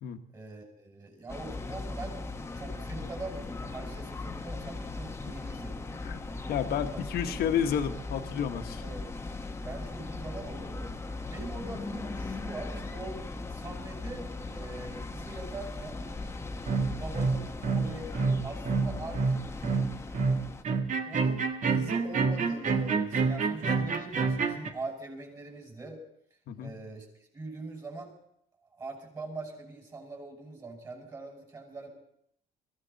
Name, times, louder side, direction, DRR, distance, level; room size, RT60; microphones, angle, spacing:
voice 1, 0.3-5.8 6.4-6.5 6.9-7.1 8.5-9.0 9.6-10.8 11.3-13.2 13.5-16.0 16.8-19.6 21.0-21.4 21.7-26.0 26.6-27.1 27.3-28.1 28.7-31.9, right 3 dB, 25° right, 0 dB, 5.9 m, -43 dB
sound 1, 1.3-20.6, left 3 dB, 15° left, 1.1 m, -38 dB
voice 2, 6.5-8.8 26.5-26.7, left 8 dB, 70° left, 7 dB, 1.4 m, -30 dB
sound 2, 16.7-24.7, right 4 dB, 45° right, 1.6 m, -28 dB
22.5 x 15.0 x 4.1 m, 0.72 s
cardioid pair, 110°, 17 cm